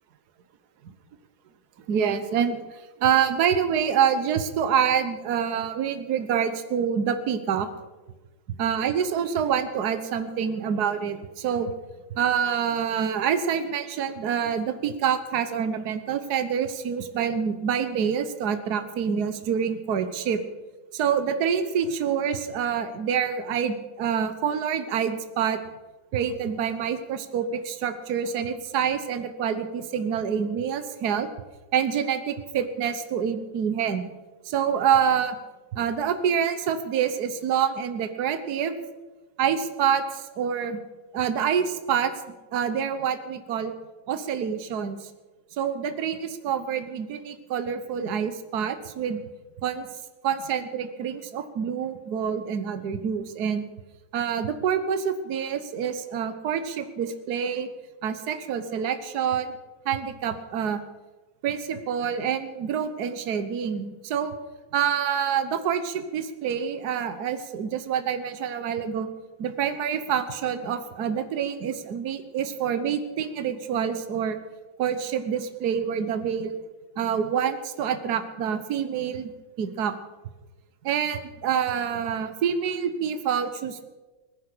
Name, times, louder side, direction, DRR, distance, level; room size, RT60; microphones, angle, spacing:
voice 1, 1.9-2.7 3.0-7.7 8.6-11.7 12.1-20.4 20.9-25.6 26.1-31.3 31.7-34.1 34.4-35.4 35.7-38.7 39.4-40.8 41.1-42.1 42.5-43.7 44.1-45.0 45.6-49.2 49.6-49.9 50.2-53.6 54.1-57.7 58.0-59.5 59.8-60.8 61.4-64.3 64.7-69.1 69.4-74.4 74.8-76.5 77.0-79.3 79.6-79.9 80.8-83.9, right 8 dB, 55° right, 10 dB, 1.5 m, -26 dB
18.5 x 10.5 x 6.8 m, 1.2 s
omnidirectional pair, 2.2 m